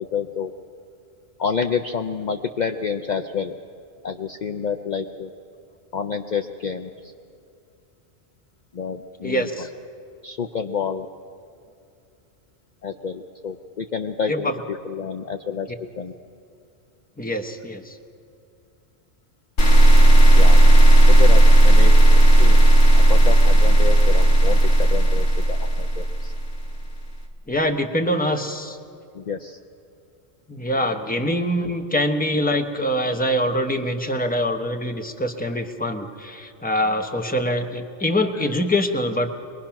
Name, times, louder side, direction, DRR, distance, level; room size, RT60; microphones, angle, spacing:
voice 1, 0.1-0.5 1.4-3.5 4.0-5.3 5.9-7.1 8.7-9.7 10.2-11.1 12.8-15.7 16.0-16.1 20.3-20.6 21.1-21.9 22.4-22.6 22.9-26.3 29.1-29.6, left 6 dB, 50° left, 7 dB, 0.7 m, -29 dB
voice 2, 9.2-9.7 14.3-14.5 17.2-18.0 27.5-28.8 30.5-39.3, equal, 10° left, 5 dB, 0.9 m, -24 dB
sound 1, 19.6-26.7, right 1 dB, 80° left, 1.8 m, -13 dB
23.0 x 20.5 x 5.9 m, 2.5 s
omnidirectional pair, 1.2 m